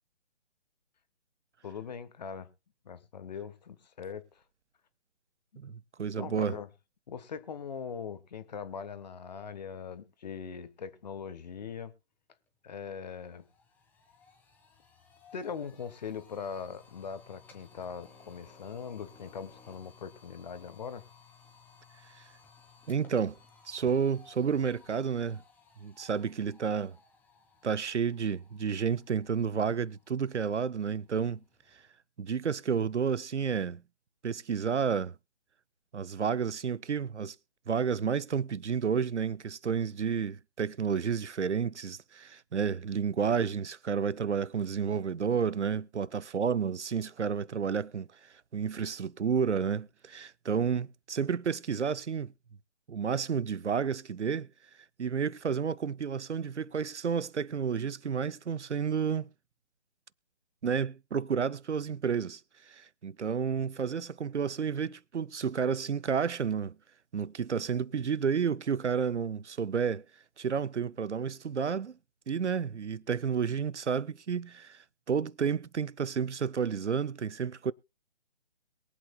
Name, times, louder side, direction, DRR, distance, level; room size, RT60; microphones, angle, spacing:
voice 1, 1.6-2.5 2.8-4.4 6.2-6.7 7.1-11.9 12.6-13.4 15.3-21.0, left 6 dB, 40° left, 1.2 m, -41 dB
voice 2, 5.6-6.6 22.9-23.4 23.7-25.4 25.8-27.0 27.6-31.4 32.2-33.8 34.2-35.2 35.9-37.4 37.7-48.1 48.5-52.3 52.9-54.5 55.0-59.3 60.6-62.4 62.7-66.8 67.1-70.0 70.4-72.0 72.3-77.7, right 6 dB, 80° right, 0.6 m, -31 dB
sound 1, 12.5-12.6 12.9-31.9, left 5 dB, 5° left, 1.2 m, -59 dB
22.5 x 8.1 x 2.3 m
figure-of-eight pair, 145°, 34 cm